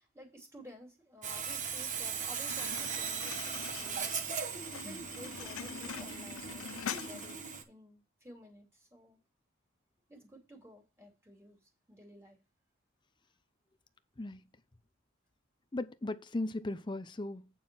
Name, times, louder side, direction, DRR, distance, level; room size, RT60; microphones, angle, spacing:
voice 1, 0.0-7.4 7.7-9.2 10.1-11.6 11.9-12.4, equal, 15° right, 2.8 m, -53 dB
Sawing, 1.2-7.6, right 6 dB, 40° right, 1.2 m, -38 dB
sound 1, 2.5-7.5, left 8 dB, 80° left, 0.5 m, -44 dB
voice 2, 15.7-17.5, left 2 dB, 25° left, 0.6 m, -37 dB
9.0 x 4.3 x 6.1 m
head